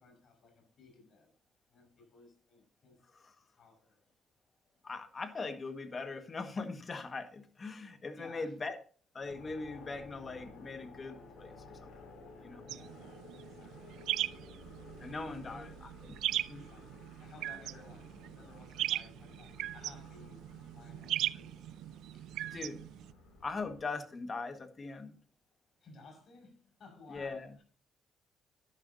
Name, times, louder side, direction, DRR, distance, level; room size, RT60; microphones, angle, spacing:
voice 1, 0.0-1.3 1.7-3.0 3.5-4.0 8.1-8.6 12.6-13.9 15.2-15.7 16.5-21.6 22.1-22.8 25.8-27.6, left 3 dB, 60° left, 5.5 m, -57 dB
voice 2, 4.8-8.8 9.1-11.5 11.8-11.9 12.4-12.6 15.0-15.9 16.5-16.7 22.5-22.9 23.4-25.2 27.1-27.5, left 3 dB, 35° left, 1.7 m, -40 dB
sound 1, 9.2-23.8, left 2 dB, 80° left, 6.1 m, -54 dB
sound 2, 12.7-23.1, right 13 dB, 85° right, 0.3 m, -39 dB
11.5 x 10.5 x 2.8 m
cardioid pair, 90°, 0 cm